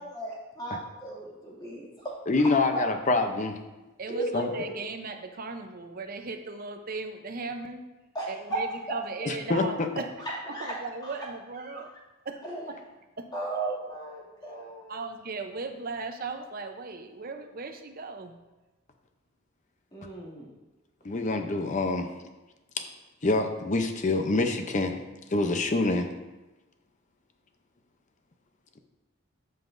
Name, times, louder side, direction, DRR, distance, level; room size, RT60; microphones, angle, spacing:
voice 1, 0.0-2.1 4.1-4.7 8.1-8.6 10.5-10.7 11.0-11.1 11.6-11.8 12.4-12.6 13.3-15.0 19.9-20.5, right 2 dB, 20° left, -6 dB, 2.4 m, -36 dB
voice 2, 2.3-3.6 4.3-4.5 9.3-9.9 21.0-22.1 23.2-25.0 25.3-26.1, left 2 dB, 35° left, 6 dB, 0.6 m, -26 dB
voice 3, 4.0-7.8 8.3-10.1 10.5-11.9 12.2-12.4 12.7-12.8 13.2-13.3 14.9-18.3, right 3 dB, 45° right, 6 dB, 0.7 m, -37 dB
13.0 x 5.6 x 2.6 m, 1.1 s
head